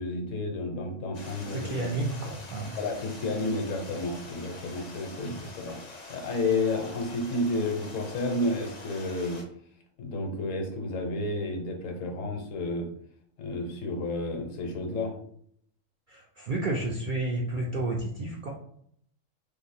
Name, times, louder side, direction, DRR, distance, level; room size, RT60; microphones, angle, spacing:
voice 1, 0.0-1.9 2.8-5.8 6.1-9.4 10.0-12.9 13.4-15.1, left 2 dB, 70° left, 3 dB, 1.1 m, -31 dB
Stream, 1.1-9.4, left 3 dB, 45° left, 0.6 m, -46 dB
voice 2, 1.5-2.7 5.2-5.4 16.1-18.5, right 2 dB, 65° right, -1 dB, 0.5 m, -31 dB
2.7 x 2.5 x 4.1 m, 0.66 s
omnidirectional pair, 1.4 m